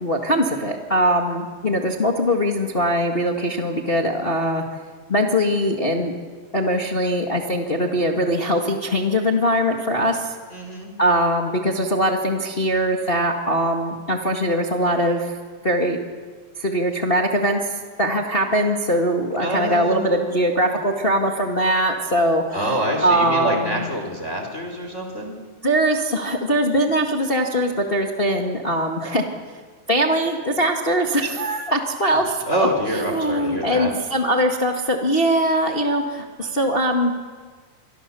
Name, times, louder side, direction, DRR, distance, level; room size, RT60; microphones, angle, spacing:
voice 1, 0.0-4.6 5.1-6.1 6.5-10.4 11.0-15.3 15.6-16.0 16.6-22.7 23.0-23.9 25.6-29.2 29.9-32.7 33.0-37.1, equal, 75° left, 2 dB, 0.5 m, -21 dB
voice 2, 10.5-10.9 19.4-20.6 22.5-25.4 32.1-32.2 32.5-33.9, equal, 20° left, 3 dB, 3.4 m, -26 dB
26.5 x 24.0 x 7.0 m, 1.5 s
omnidirectional pair, 4.6 m